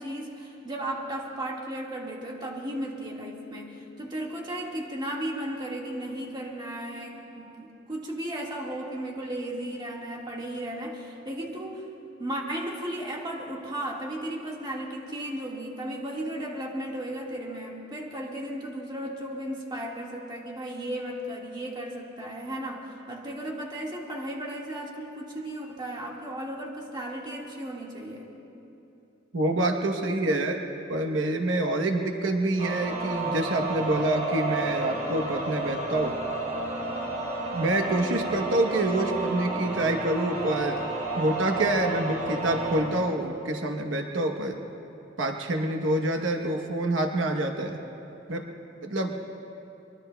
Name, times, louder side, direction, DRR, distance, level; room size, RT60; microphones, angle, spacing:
voice 1, 0.0-11.8 12.2-28.3, right 1 dB, 25° right, -2 dB, 1.8 m, -35 dB
voice 2, 29.3-30.6 30.9-36.2 37.5-40.8 41.1-44.6 45.2-47.8 48.3-48.4 48.8-49.1, right 1 dB, 85° right, 3 dB, 1.0 m, -26 dB
sound 1, 32.6-42.8, right 2 dB, 40° right, 3.6 m, -31 dB
23.5 x 22.5 x 2.3 m, 2.9 s
head